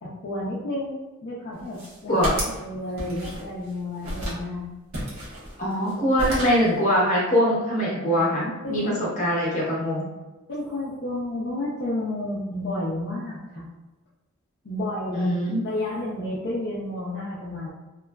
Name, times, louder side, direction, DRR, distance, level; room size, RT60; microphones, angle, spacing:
voice 1, 0.0-2.2 2.5-4.7 8.6-9.0 10.5-13.7 14.6-15.3 15.6-17.7, left 1 dB, 50° left, -7 dB, 0.5 m, -31 dB
sound 1, 1.6-2.6 3.0-3.7 4.0-4.4 4.9-5.9 6.2-6.7, equal, 75° right, 1.1 m, -32 dB
voice 2, 5.6-10.0 15.1-15.6, equal, 35° left, -5 dB, 0.9 m, -23 dB
2.9 x 2.4 x 2.2 m, 1.1 s
head